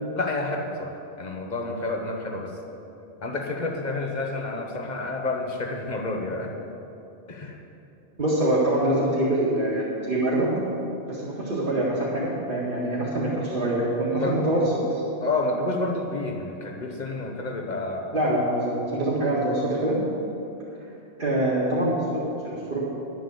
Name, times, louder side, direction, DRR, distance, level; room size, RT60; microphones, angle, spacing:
voice 1, 0.1-2.6 3.2-6.5 7.3-7.6 14.1-14.4 15.2-18.1, left 2 dB, 40° left, 2 dB, 1.3 m, -29 dB
voice 2, 8.2-10.5 11.1-14.6 14.9-15.0 18.1-19.9 21.2-22.9, right 1 dB, 45° right, -10 dB, 2.2 m, -25 dB
10.5 x 8.1 x 8.2 m, 2.8 s
omnidirectional pair, 1.2 m